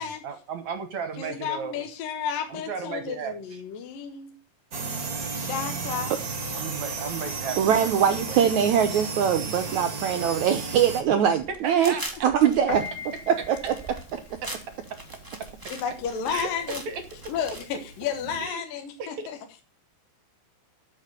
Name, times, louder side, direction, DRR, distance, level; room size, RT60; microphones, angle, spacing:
voice 1, 0.0-1.8 2.5-3.6 6.5-8.4 11.6-12.0 14.4-14.5 15.4-15.5 16.3-16.5 16.9-17.0 18.4-18.6 19.0-19.3, right 6 dB, 60° right, 9 dB, 2.0 m, -35 dB
voice 2, 1.2-4.4 5.4-6.1 15.7-16.8 17.3-19.4, left 7 dB, 65° left, 6 dB, 2.8 m, -32 dB
sound 1, 4.7-11.0, right 4 dB, 40° right, 1.3 m, -33 dB
voice 3, 7.6-11.9 12.2-12.8 13.3-13.7, right 8 dB, 80° right, 8 dB, 1.7 m, -22 dB
sound 2, 11.1-17.6, right 1 dB, 20° right, 0.6 m, -42 dB
Piano, 12.7-18.5, left 2 dB, 25° left, 3.5 m, -42 dB
13.5 x 6.7 x 6.8 m, 0.34 s
omnidirectional pair, 4.5 m